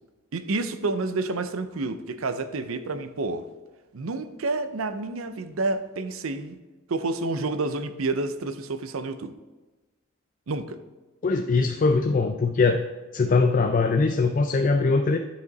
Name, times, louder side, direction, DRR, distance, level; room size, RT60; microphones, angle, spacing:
voice 1, 0.3-3.5 3.9-6.6 6.9-9.3 10.5-10.8, right 3 dB, 85° right, 10 dB, 0.6 m, -29 dB
voice 2, 11.2-12.8 13.1-15.2, left 4 dB, 40° left, 6 dB, 0.4 m, -21 dB
11.0 x 4.9 x 4.0 m, 1.2 s
head